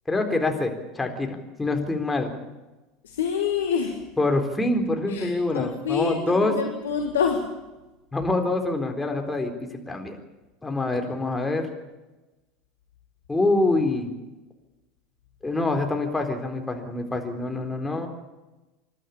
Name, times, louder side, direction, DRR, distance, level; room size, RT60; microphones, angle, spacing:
voice 1, 0.1-2.3 4.2-6.5 8.1-9.5 9.9-10.2 10.6-11.7 13.3-14.1 15.4-18.1, left 2 dB, 10° left, 4 dB, 4.0 m, -25 dB
voice 2, 3.0-4.1 5.1-7.6, left 7 dB, 75° left, 3 dB, 2.0 m, -27 dB
28.0 x 12.5 x 8.7 m, 1.1 s
figure-of-eight pair, 75°, 0 cm